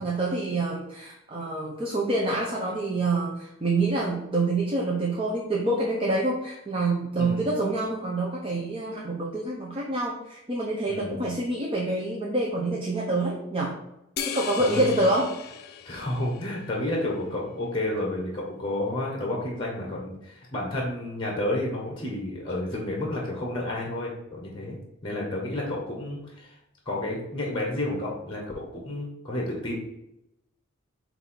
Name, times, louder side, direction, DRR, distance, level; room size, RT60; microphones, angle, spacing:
voice 1, 0.0-13.8 14.3-15.4, right 2 dB, 25° right, -3 dB, 0.7 m, -27 dB
voice 2, 10.9-11.2 14.6-14.8 15.8-24.8 25.0-26.5 26.8-29.7, left 1 dB, 25° left, -1 dB, 1.3 m, -31 dB
sound 1, 14.2-16.9, left 8 dB, 50° left, 0.4 m, -37 dB
7.7 x 2.7 x 4.5 m, 0.85 s
head